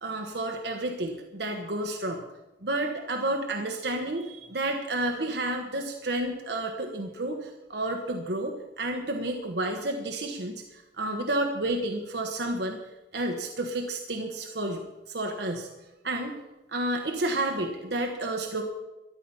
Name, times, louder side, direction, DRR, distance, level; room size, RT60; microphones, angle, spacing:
voice 1, 0.0-2.2 2.6-12.8 13.1-15.7 16.0-16.4 16.7-18.6, right 1 dB, 65° right, 3 dB, 1.3 m, -31 dB
13.5 x 11.5 x 5.6 m, 1.0 s
head